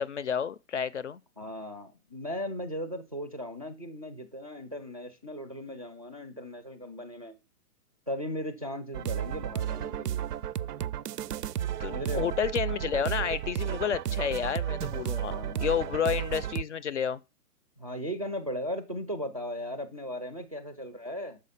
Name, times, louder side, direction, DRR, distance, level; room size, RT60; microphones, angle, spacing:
voice 1, 0.0-1.2 11.8-17.2, left 7 dB, 50° left, 0.5 m, -30 dB
voice 2, 1.4-7.4 8.1-10.3 11.9-12.3 15.1-15.9 17.8-21.4, equal, 25° right, 0.4 m, -37 dB
sound 1, 8.9-16.6, right 11 dB, 90° right, 0.6 m, -33 dB
6.6 x 4.8 x 5.6 m
hypercardioid pair, 165°, 46 cm